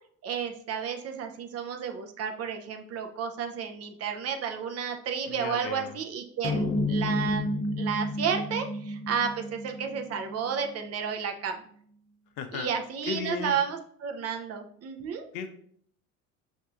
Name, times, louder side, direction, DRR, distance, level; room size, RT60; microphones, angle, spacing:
voice 1, 0.2-7.5 7.8-11.6 12.5-15.2, right 7 dB, 35° right, 4 dB, 0.5 m, -32 dB
voice 2, 5.3-6.0 12.4-12.7 13.0-13.6 15.3-15.5, left 6 dB, 60° left, 7 dB, 0.7 m, -35 dB
sound 1, 6.4-11.1, left 1 dB, 20° left, 0.6 m, -31 dB
5.4 x 2.7 x 2.4 m, 0.63 s
hypercardioid pair, 70°, 43 cm